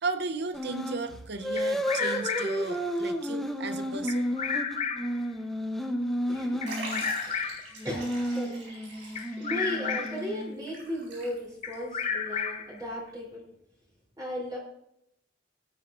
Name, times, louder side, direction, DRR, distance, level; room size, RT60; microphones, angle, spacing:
voice 1, 0.0-4.3, right 3 dB, 60° right, 10 dB, 0.7 m, -35 dB
sound 1, 0.5-1.0 1.4-7.1 7.8-10.7, equal, ahead, 0.8 m, -32 dB
Bird vocalization bird call bird song, 1.6-2.7 4.1-5.2 6.6-7.8 9.2-10.3 11.6-12.8, left 6 dB, 35° left, 0.8 m, -32 dB
voice 2, 6.3-6.6 7.3-7.4 7.8-8.6 9.4-13.4 14.2-14.6, left 1 dB, 20° right, -4 dB, 3.4 m, -36 dB
Liquid, 6.7-11.7 12.0-12.1 13.1-13.2, right 2 dB, 75° right, 4.6 m, -43 dB
17.0 x 9.4 x 2.5 m, 0.78 s
head